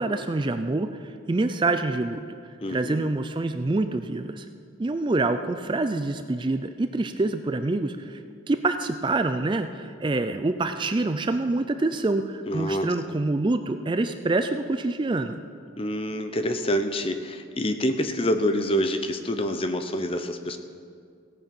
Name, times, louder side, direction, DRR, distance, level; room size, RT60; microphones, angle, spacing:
voice 1, 0.0-2.2 2.7-4.5 4.8-8.2 8.5-15.4, right 2 dB, 25° right, 8 dB, 0.4 m, -26 dB
voice 2, 2.6-3.1 12.5-12.9 15.8-20.6, equal, 25° left, 8 dB, 0.6 m, -27 dB
16.5 x 8.9 x 5.9 m, 2.2 s
head